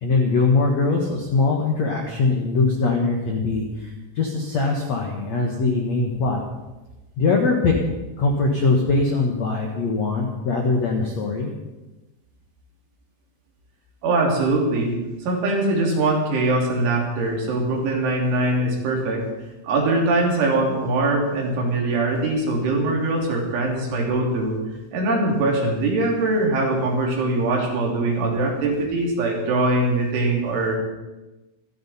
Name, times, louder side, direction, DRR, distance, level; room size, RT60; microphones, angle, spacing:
voice 1, 0.0-3.6 4.2-6.4 7.2-7.7 8.2-11.5, left 3 dB, 85° left, 1 dB, 1.5 m, -21 dB
voice 2, 14.0-14.9 15.2-19.2 19.6-24.6 24.9-30.8, right 2 dB, 70° right, -1 dB, 5.4 m, -22 dB
27.0 x 11.0 x 4.3 m, 1.1 s
omnidirectional pair, 5.7 m